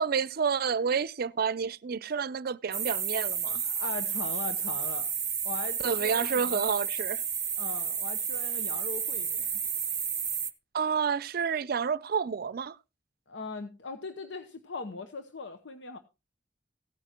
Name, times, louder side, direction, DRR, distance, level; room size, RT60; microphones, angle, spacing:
voice 1, 0.0-3.6 5.8-7.2 10.7-12.8, right 6 dB, 55° right, 0.5 m, -29 dB
sound 1, 2.7-10.5, right 7 dB, 20° right, 0.7 m, -31 dB
voice 2, 3.6-5.1 5.4-6.7 7.6-9.6 13.3-16.0, left 3 dB, 90° left, 0.9 m, -39 dB
16.0 x 9.2 x 2.9 m
head